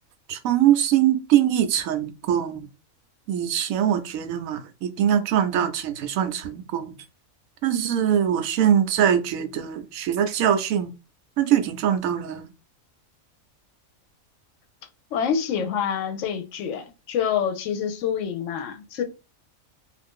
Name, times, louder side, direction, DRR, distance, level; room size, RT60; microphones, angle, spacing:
voice 1, 0.3-2.7 3.3-6.9 7.6-10.9 11.4-12.5, right 10 dB, 80° right, 1.0 m, -22 dB
voice 2, 15.1-19.0, left 7 dB, 70° left, 0.9 m, -27 dB
2.5 x 2.5 x 3.5 m
omnidirectional pair, 1.4 m